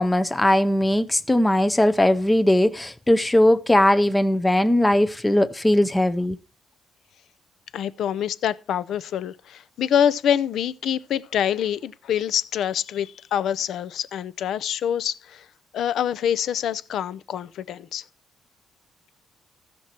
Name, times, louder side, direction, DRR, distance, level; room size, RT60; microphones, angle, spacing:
voice 1, 0.0-6.4, left 1 dB, 10° left, 0.5 m, -19 dB
voice 2, 7.7-15.5 15.7-18.0, left 9 dB, 70° left, 0.5 m, -25 dB
15.0 x 6.0 x 4.3 m
cardioid pair, 135°, 0 cm